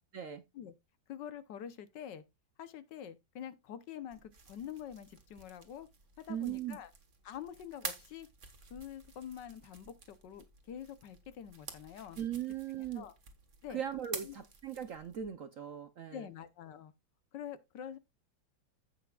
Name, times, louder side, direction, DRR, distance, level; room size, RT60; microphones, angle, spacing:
voice 1, 0.1-0.4 6.3-6.8 12.2-13.1 13.7-16.3, right 9 dB, 60° right, 0.8 m, -39 dB
voice 2, 1.1-2.2 2.6-5.9 6.2-6.9 7.2-8.3 8.7-12.2 12.9-13.1 13.6-13.8 14.2-14.4 16.1-16.9 17.3-18.0, left 9 dB, 70° left, 1.5 m, -46 dB
sound 1, 4.1-15.3, right 5 dB, 40° right, 1.7 m, -50 dB
15.5 x 5.9 x 2.3 m
omnidirectional pair, 2.1 m